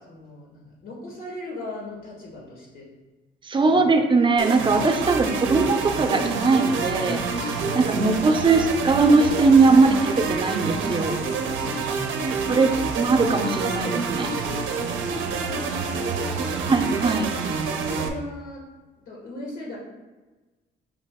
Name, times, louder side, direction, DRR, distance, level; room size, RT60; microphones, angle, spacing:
voice 1, 0.0-2.9 3.6-3.8 7.6-8.2 14.8-16.7 17.9-18.7 19.0-19.8, left 1 dB, 85° left, -3 dB, 1.4 m, -39 dB
voice 2, 3.4-7.2 7.7-11.2 12.5-14.3 16.7-17.3, right 3 dB, 25° right, 5 dB, 0.5 m, -20 dB
sound 1, 4.4-18.1, right 4 dB, 80° right, 0.5 m, -27 dB
4.8 x 2.9 x 3.5 m, 1.2 s
cardioid pair, 90°, 20 cm